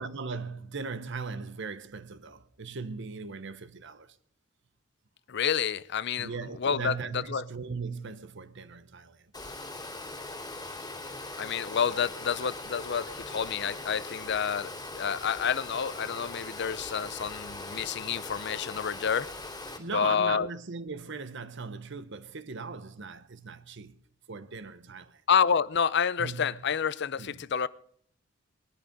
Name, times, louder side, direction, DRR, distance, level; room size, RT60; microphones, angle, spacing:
voice 1, 0.0-4.2 6.2-9.3 19.8-24.0 24.3-25.2 26.2-26.6 27.2-27.4, right 4 dB, 60° right, 0.9 m, -39 dB
voice 2, 5.3-7.4 11.4-19.3 19.9-20.5 25.3-27.7, left 7 dB, 55° left, 0.5 m, -29 dB
Water, 9.3-19.8, left 2 dB, 20° left, 2.9 m, -41 dB
20.0 x 11.5 x 5.3 m
head